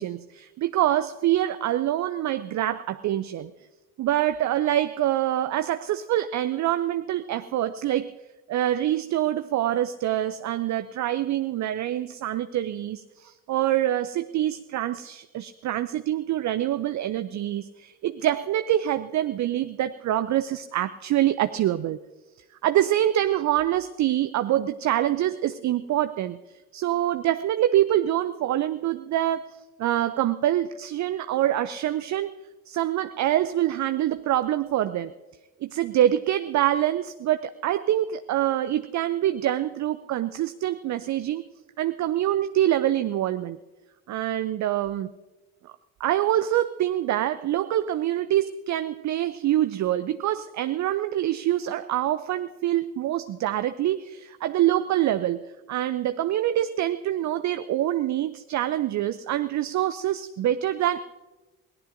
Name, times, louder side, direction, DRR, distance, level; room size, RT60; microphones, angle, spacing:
voice 1, 0.0-3.5 4.0-8.1 8.5-22.0 22.6-26.4 26.7-32.3 32.7-35.1 35.6-41.4 41.8-43.6 44.1-45.1 45.6-45.7 46.0-61.0, right 12 dB, 40° right, 12 dB, 0.6 m, -25 dB
22.5 x 17.5 x 2.6 m, 1.1 s
figure-of-eight pair, 45°, 45 cm